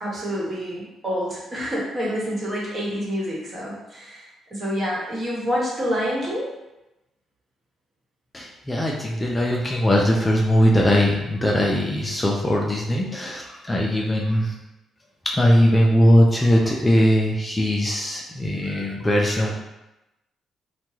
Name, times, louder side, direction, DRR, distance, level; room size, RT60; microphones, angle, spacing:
voice 1, 0.0-6.5, equal, 40° right, -5 dB, 1.1 m, -27 dB
voice 2, 8.3-14.5 15.2-19.5, equal, 20° left, -2 dB, 0.4 m, -20 dB
2.9 x 2.2 x 3.1 m, 0.95 s
cardioid pair, 90°, 0 cm